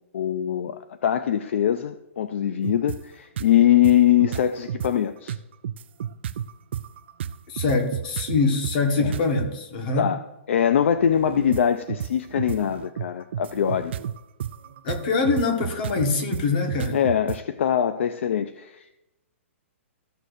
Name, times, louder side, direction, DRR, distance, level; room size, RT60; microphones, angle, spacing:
voice 1, 0.1-5.3 9.0-9.2 10.0-10.2 10.5-13.9 16.9-19.0, left 10 dB, 60° left, 11 dB, 0.5 m, -22 dB
sound 1, 2.6-3.0 3.4-3.5 3.8-4.9 5.3-9.5 10.9-17.4, right 9 dB, 55° right, 0.3 m, -31 dB
voice 2, 7.5-10.1 14.8-17.0, left 4 dB, 40° left, 4 dB, 1.5 m, -24 dB
14.5 x 6.5 x 2.6 m, 0.93 s
hypercardioid pair, 165°, 7 cm